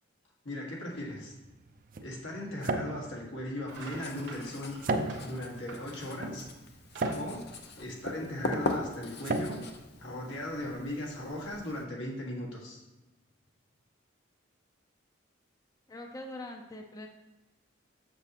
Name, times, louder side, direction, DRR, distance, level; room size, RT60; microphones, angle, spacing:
voice 1, 0.4-1.4 2.0-4.8 5.2-6.5 7.2-7.5 7.8-9.6 10.0-12.8, left 1 dB, 85° left, -3 dB, 1.8 m, -38 dB
sound 1, 1.0-10.8, right 2 dB, 45° right, 0.5 m, -37 dB
sound 2, 3.0-3.2 3.6-6.3 6.7-8.4, right 3 dB, 65° right, 1.2 m, -48 dB
Writing, 3.7-11.8, left 2 dB, 60° left, 0.7 m, -41 dB
voice 2, 15.9-17.1, left 1 dB, 20° left, 3 dB, 0.5 m, -42 dB
6.9 x 6.7 x 2.9 m, 1.1 s
head